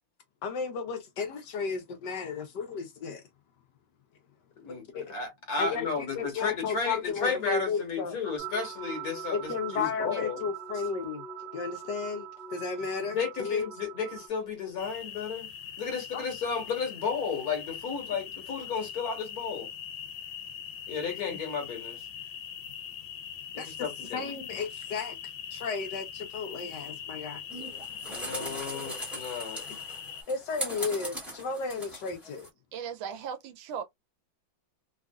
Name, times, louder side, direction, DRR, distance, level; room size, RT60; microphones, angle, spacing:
voice 1, 0.4-3.2 4.7-5.1 5.6-8.2 9.3-11.2 11.5-13.7 16.1-16.2 23.6-23.9 24.1-25.2 25.5-27.4 30.3-32.5, left 5 dB, 70° left, 1.2 m, -34 dB
voice 2, 5.1-10.4 13.0-15.5 15.8-19.7 20.9-22.0 23.5-24.3 28.1-29.6, left 5 dB, 55° left, 1.5 m, -33 dB
sound 1, 8.4-14.3, right 7 dB, 40° right, 0.7 m, -41 dB
sound 2, 14.8-30.2, left 8 dB, 90° left, 1.4 m, -42 dB
sound 3, 27.5-32.5, equal, ahead, 1.1 m, -39 dB
voice 3, 32.7-33.8, right 7 dB, 85° right, 1.4 m, -37 dB
3.4 x 2.4 x 2.2 m
omnidirectional pair, 2.1 m